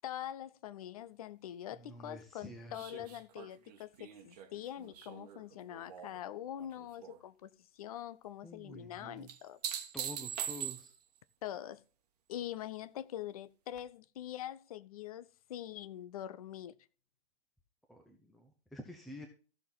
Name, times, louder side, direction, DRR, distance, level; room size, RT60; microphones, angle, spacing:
voice 1, 0.0-9.6 11.4-11.8 12.3-16.7, left 11 dB, 35° left, 0.8 m, -44 dB
voice 2, 1.8-3.1 8.4-9.3 9.9-10.9 17.9-19.3, equal, ahead, 0.9 m, -49 dB
sound 1, 2.7-6.2 6.6-7.2 9.3-11.2 13.8-13.9, right 9 dB, 35° right, 1.4 m, -43 dB
14.5 x 6.7 x 4.0 m
figure-of-eight pair, 120°, 34 cm